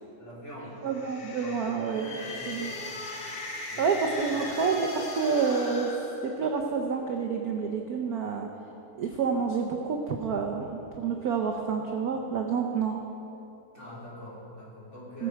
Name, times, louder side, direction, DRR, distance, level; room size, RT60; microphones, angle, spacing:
voice 1, 0.2-0.7 1.4-2.7 3.7-3.8 4.2-4.4 13.7-15.3, equal, 30° left, -7 dB, 3.6 m, -44 dB
sound 1, 0.7-6.8, left 2 dB, 50° left, 1.5 m, -39 dB
voice 2, 0.8-2.1 2.5-2.7 3.8-5.9 6.2-8.5 9.0-13.0 15.2-15.3, right 5 dB, 65° right, 3 dB, 1.0 m, -28 dB
19.5 x 7.4 x 4.6 m, 2.9 s
omnidirectional pair, 2.4 m